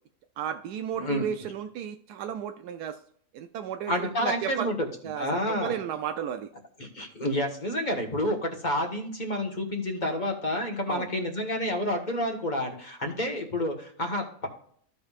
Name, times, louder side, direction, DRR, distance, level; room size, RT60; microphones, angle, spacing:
voice 1, 0.4-3.0 3.3-4.7 5.0-6.5 10.9-11.1, right 9 dB, 85° right, 7 dB, 1.1 m, -34 dB
voice 2, 1.0-1.3 3.9-4.9 5.1-5.8 6.8-14.5, left 1 dB, 30° left, 3 dB, 1.6 m, -29 dB
15.0 x 5.3 x 2.4 m, 0.62 s
omnidirectional pair, 1.7 m